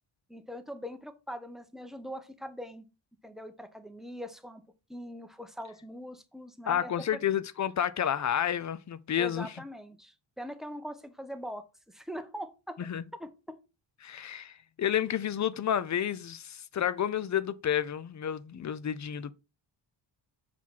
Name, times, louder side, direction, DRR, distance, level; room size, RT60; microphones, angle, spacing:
voice 1, 0.3-2.8 3.2-4.6 4.9-7.2 9.2-12.9 13.2-13.6, equal, ahead, 0.9 m, -42 dB
voice 2, 6.7-9.5 12.8-13.0 14.0-14.5 14.8-19.3, left 9 dB, 40° left, 0.5 m, -30 dB
6.0 x 4.6 x 3.7 m
cardioid pair, 85°, 46 cm